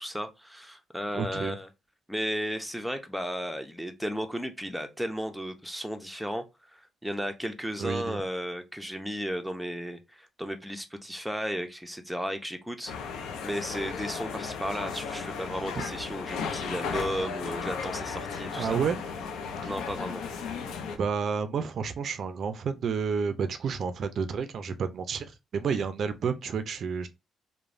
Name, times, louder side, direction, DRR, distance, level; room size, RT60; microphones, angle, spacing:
voice 1, 0.0-1.7 2.1-6.4 6.7-18.8 19.7-20.3, equal, ahead, 0.5 m, -34 dB
voice 2, 1.1-1.6 7.8-8.2 15.8-15.9 18.6-19.0 19.6-19.7 20.9-27.1, right 6 dB, 60° right, 0.3 m, -30 dB
sound 1, 12.9-21.0, left 5 dB, 85° left, 0.4 m, -35 dB
3.1 x 2.1 x 2.4 m
cardioid pair, 90°, 0 cm